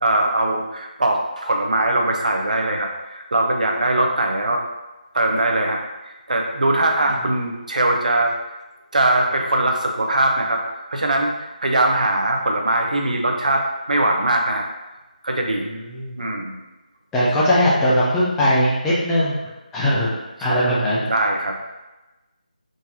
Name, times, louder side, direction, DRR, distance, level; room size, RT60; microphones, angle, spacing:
voice 1, 0.0-4.6 5.1-5.8 6.3-8.3 8.9-10.6 10.9-11.3 11.6-14.7 15.2-15.7 16.2-16.6 20.4-20.6 21.1-21.6, right 1 dB, 60° right, 2 dB, 0.6 m, -21 dB
voice 2, 15.7-16.2 17.1-19.4 19.7-20.1 20.4-21.0, equal, 5° left, -8 dB, 0.3 m, -19 dB
3.8 x 2.7 x 2.6 m, 1.1 s
figure-of-eight pair, 165°, 5 cm